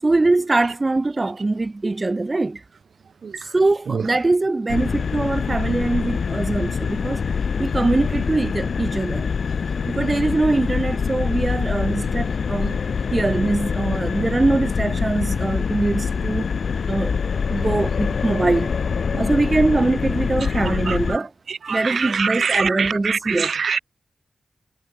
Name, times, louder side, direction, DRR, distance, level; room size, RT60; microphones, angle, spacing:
voice 1, 0.0-2.6 3.5-7.2 7.6-9.3 9.9-12.8 13.1-16.5 16.9-17.1 17.5-18.7 19.2-21.3 21.7-23.5, right 2 dB, 30° right, 5.7 m, -22 dB
sound 1, 4.7-21.2, left 6 dB, 75° left, 3.6 m, -24 dB
voice 2, 20.9-21.2 21.7-23.8, right 6 dB, 80° right, 2.4 m, -24 dB
wide cardioid pair, 100°, 0 cm